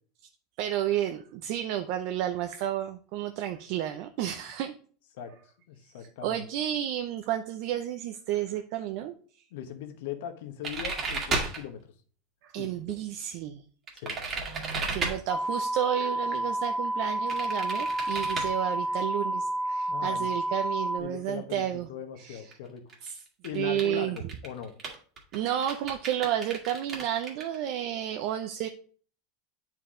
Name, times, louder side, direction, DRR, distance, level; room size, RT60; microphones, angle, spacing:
voice 1, 0.6-4.8 6.2-9.4 12.4-13.6 14.4-21.9 22.2-22.4 23.0-23.1 23.5-24.2 25.3-28.7, right 11 dB, 50° right, 7 dB, 0.6 m, -31 dB
voice 2, 5.7-6.4 9.5-11.8 12.6-12.9 13.9-14.2 19.9-20.3 21.0-22.9 23.4-24.7, left 9 dB, 70° left, 8 dB, 1.2 m, -40 dB
sound 1, 10.6-11.6 13.9-15.2 17.3-18.5 22.5-22.6 22.9-23.1 23.4-23.8 24.2-27.6, right 3 dB, 25° right, 1.8 m, -32 dB
sound 2, 15.3-21.0, right 1 dB, 15° left, 0.5 m, -30 dB
9.3 x 4.6 x 3.8 m, 0.43 s
supercardioid pair, 165°, 0 cm